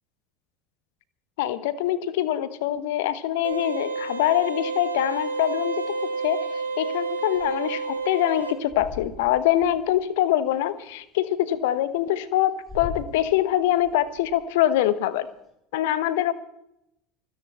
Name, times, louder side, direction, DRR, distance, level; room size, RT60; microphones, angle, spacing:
voice 1, 1.4-15.3 15.7-16.3, left 12 dB, 60° left, 16 dB, 1.1 m, -24 dB
sound 1, 3.4-8.5, right 4 dB, 85° right, 2.3 m, -30 dB
sound 2, 6.8-11.0 11.6-11.7 12.1-15.5, left 5 dB, 15° left, 7.8 m, -41 dB
26.0 x 10.5 x 4.3 m, 0.78 s
figure-of-eight pair, 70°, 0 cm